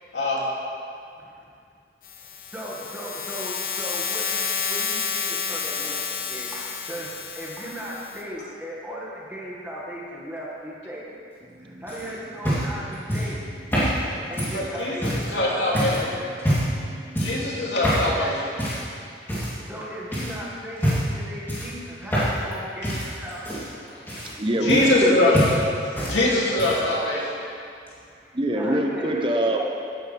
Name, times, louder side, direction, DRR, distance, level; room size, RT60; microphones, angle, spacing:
voice 1, 1.2-1.5 2.2-11.2 11.6-13.4 14.3-16.3 18.0-18.2 19.4-23.6 24.8-25.2 28.1-29.2, equal, 10° right, -5 dB, 1.9 m, -37 dB
sound 1, 2.0-8.2, left 5 dB, 50° left, 1.2 m, -30 dB
sound 2, 11.9-15.3 15.7-16.0 16.4-16.8 17.1-17.5 17.8-18.1 18.6-18.9 19.3-19.8 20.1-20.3 20.8-21.2 21.5-22.5 22.8-25.1 25.3-26.2 26.4-26.9 27.9-28.0, equal, 15° left, 3.2 m, -26 dB
voice 2, 13.7-14.4 16.7-17.2 24.4-25.3 28.3-29.9, right 1 dB, 30° right, 2 dB, 0.9 m, -26 dB
voice 3, 14.5-16.0 17.2-18.4 24.5-25.4 26.1-27.4, left 2 dB, 85° left, -5 dB, 2.8 m, -22 dB
16.0 x 10.5 x 3.5 m, 2.4 s
head